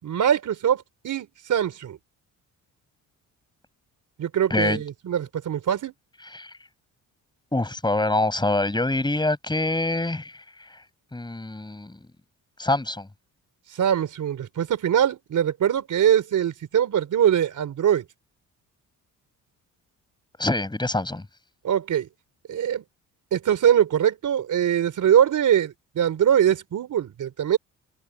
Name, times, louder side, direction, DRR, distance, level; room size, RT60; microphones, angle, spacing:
voice 1, 0.0-2.0 4.2-5.9 13.7-18.0 21.6-22.1 22.5-22.8 23.3-27.6, right 9 dB, 60° right, 3.7 m, -22 dB
voice 2, 4.5-4.8 6.3-6.5 7.5-10.8 11.1-12.0 12.6-13.1 20.4-21.2, left 2 dB, 15° left, 5.3 m, -25 dB
cardioid pair, 95°, 34 cm